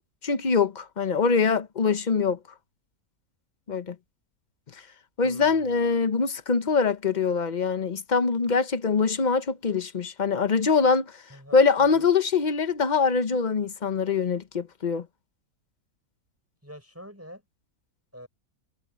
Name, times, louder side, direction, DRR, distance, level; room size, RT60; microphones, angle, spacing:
voice 1, 0.2-2.4 3.7-4.0 5.2-11.1 11.5-15.1, left 5 dB, 35° left, 0.9 m, -23 dB
voice 2, 5.2-5.9 11.3-11.6 12.0-12.1 16.6-17.4 18.1-18.3, equal, 10° right, 6.2 m, -45 dB
omnidirectional pair, 1.5 m